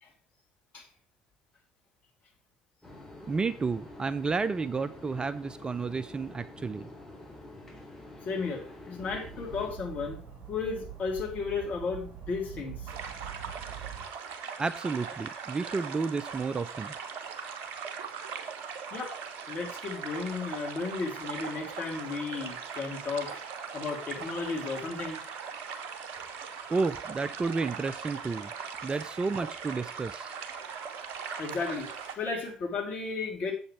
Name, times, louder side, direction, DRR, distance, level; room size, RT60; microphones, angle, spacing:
sound 1, 2.8-9.7, left 1 dB, 10° left, 3.5 m, -47 dB
voice 1, 3.3-6.9 14.6-16.9 26.7-28.5 28.8-30.3, right 4 dB, 20° right, 14 dB, 0.4 m, -31 dB
voice 2, 8.2-10.2 10.5-12.9 18.9-19.1 19.5-23.4 23.7-25.2 31.4-33.5, left 4 dB, 40° left, -1 dB, 3.1 m, -34 dB
sound 2, 9.0-14.1, right 8 dB, 40° right, 3.6 m, -44 dB
sound 3, 12.9-32.2, right 6 dB, 55° right, 1.1 m, -40 dB
7.9 x 7.4 x 4.6 m, 0.42 s
figure-of-eight pair, 60°, 4 cm